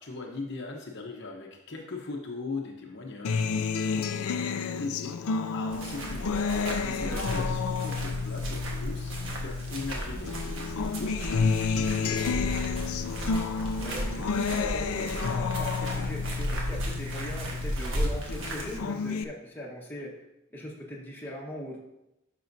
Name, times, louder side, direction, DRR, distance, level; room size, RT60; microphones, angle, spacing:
voice 1, 0.0-12.5, left 3 dB, 50° left, 0 dB, 0.9 m, -40 dB
Acoustic guitar, 3.2-9.9 10.3-17.9 18.3-19.2, left 5 dB, 85° left, 0.5 m, -31 dB
sound 1, 5.7-18.8, equal, 65° right, 1.4 m, -34 dB
voice 2, 6.9-7.3 13.8-20.1 20.5-21.8, equal, 10° left, -4 dB, 1.4 m, -40 dB
10.5 x 6.1 x 2.7 m, 0.90 s
head